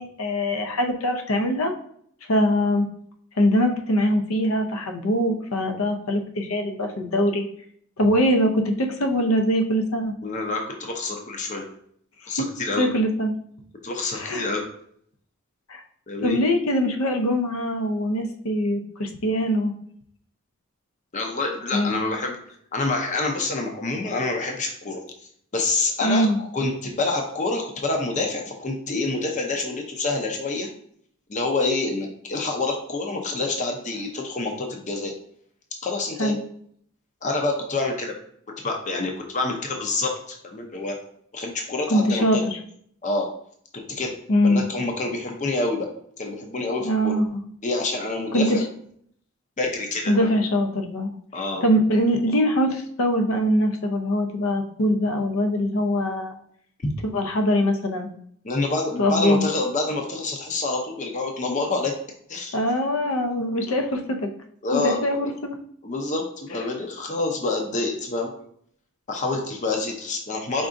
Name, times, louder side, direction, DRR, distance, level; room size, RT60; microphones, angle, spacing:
voice 1, 0.0-1.7 2.3-2.9 3.4-7.4 8.0-10.1 12.8-13.3 14.1-14.5 15.7-15.8 16.2-19.7 21.7-22.0 26.0-26.4 36.2-36.4 41.9-42.4 44.3-44.7 46.8-47.4 48.3-48.6 50.1-51.1 51.6-56.3 57.0-58.1 59.0-59.5 62.5-64.3 64.7-65.5, equal, 80° left, 4 dB, 0.7 m, -22 dB
voice 2, 10.2-11.7 12.3-12.9 13.8-14.6 16.1-16.4 21.1-22.4 22.7-25.0 25.5-30.7 31.3-35.1 35.8-36.4 37.2-38.2 38.6-41.0 41.3-42.4 43.0-43.3 44.0-44.1 44.4-45.9 46.2-47.1 47.6-48.6 49.6-50.3 51.3-51.6 56.8-56.9 58.4-61.9 62.3-62.5 64.6-65.3 65.8-68.3 69.1-70.7, left 3 dB, 35° left, 2 dB, 0.6 m, -27 dB
4.6 x 3.7 x 2.6 m, 0.65 s
head